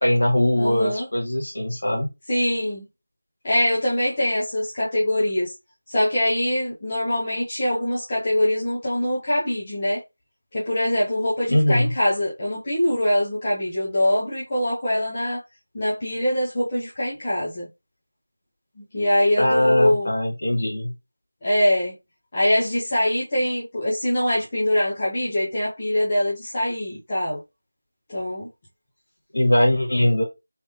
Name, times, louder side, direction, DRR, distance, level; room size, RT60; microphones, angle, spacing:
voice 1, 0.0-2.1 11.5-11.9 19.4-20.9 29.3-30.2, left 1 dB, 55° left, 1.9 m, -21 dB
voice 2, 0.6-1.1 2.3-2.8 3.4-5.5 5.9-10.0 10.5-15.4 15.7-17.7 18.8-20.1 21.4-21.9 22.3-27.4 28.1-28.5, left 1 dB, 20° left, 0.7 m, -23 dB
3.2 x 3.1 x 2.8 m
figure-of-eight pair, 180°, 0 cm